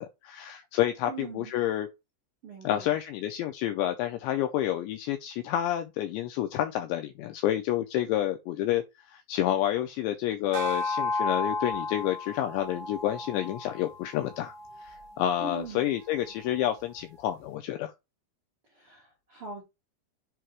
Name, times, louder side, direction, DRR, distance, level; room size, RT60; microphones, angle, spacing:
voice 1, 0.0-1.9 2.6-14.5 14.8-17.9, left 12 dB, 90° left, 2.5 m, -29 dB
voice 2, 1.0-1.5 2.4-3.0 15.4-15.9 18.7-19.6, right 3 dB, 90° right, 1.2 m, -41 dB
sound 1, 10.5-15.1, left 3 dB, 65° right, 2.2 m, -33 dB
7.4 x 2.8 x 4.6 m
omnidirectional pair, 5.7 m